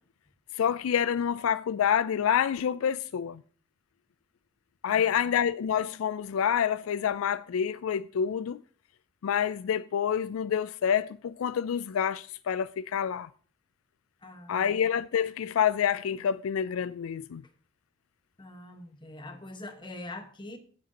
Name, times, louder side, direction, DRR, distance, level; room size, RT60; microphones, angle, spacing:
voice 1, 0.6-3.4 4.8-8.6 9.2-13.3 14.5-17.4, left 8 dB, 80° left, 0.4 m, -27 dB
voice 2, 4.9-5.3 14.2-14.8 18.4-20.6, left 2 dB, 25° left, 1.3 m, -43 dB
17.0 x 7.6 x 2.9 m
head